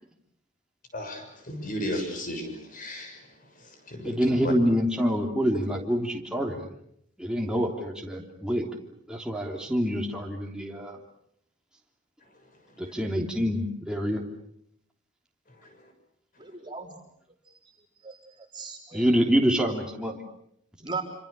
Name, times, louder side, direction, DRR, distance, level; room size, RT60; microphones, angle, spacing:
voice 1, 0.9-3.2 3.9-4.5, left 1 dB, 40° left, 5 dB, 7.0 m, -34 dB
voice 2, 4.0-6.7 7.2-8.8 9.1-11.0 12.8-14.2 18.9-20.2, equal, 5° right, 0 dB, 3.2 m, -26 dB
voice 3, 16.4-17.0 17.5-17.6 18.0-19.1 20.8-21.0, right 4 dB, 25° right, 1 dB, 3.9 m, -38 dB
27.5 x 26.5 x 6.8 m, 0.73 s
head